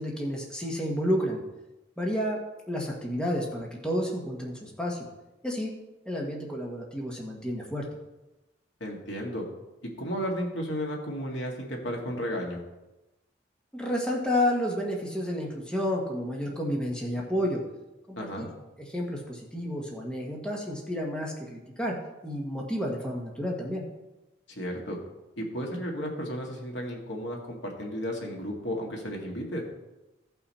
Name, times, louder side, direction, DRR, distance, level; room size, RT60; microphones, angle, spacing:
voice 1, 0.0-1.4 2.0-2.4 2.7-5.0 5.4-5.7 6.0-7.9 13.7-17.6 18.1-18.5 18.9-21.9 22.2-23.8, equal, 5° left, -2 dB, 1.4 m, -30 dB
voice 2, 8.8-9.4 10.0-12.6 18.2-18.5 24.5-25.0 25.4-29.6, equal, 80° left, 0 dB, 2.2 m, -33 dB
15.5 x 5.7 x 4.3 m, 1.0 s
head